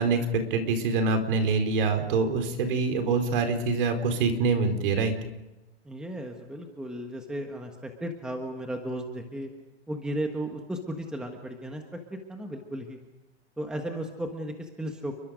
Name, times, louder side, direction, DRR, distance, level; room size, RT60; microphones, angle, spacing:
voice 1, 0.0-5.1, right 4 dB, 50° right, 7 dB, 4.5 m, -25 dB
voice 2, 5.8-9.5 9.9-13.0 13.6-15.2, right 1 dB, ahead, 3 dB, 1.4 m, -35 dB
29.5 x 23.5 x 5.2 m, 1.0 s
hypercardioid pair, 160°, 34 cm